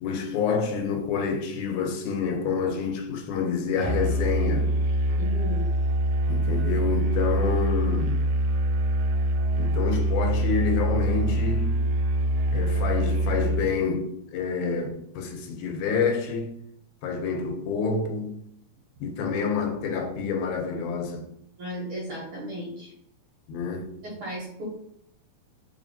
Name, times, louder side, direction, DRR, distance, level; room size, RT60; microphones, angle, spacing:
voice 1, 0.0-4.7 6.3-8.3 9.6-11.8 12.5-16.5 17.0-18.3 19.0-21.2 23.5-23.9, left 5 dB, 85° left, 2.1 m, -28 dB
Musical instrument, 3.8-13.7, right 1 dB, 85° right, 1.9 m, -24 dB
voice 2, 5.1-5.6 21.6-22.9 24.0-24.7, equal, 60° right, 1.5 m, -35 dB
4.0 x 3.4 x 2.7 m
omnidirectional pair, 3.4 m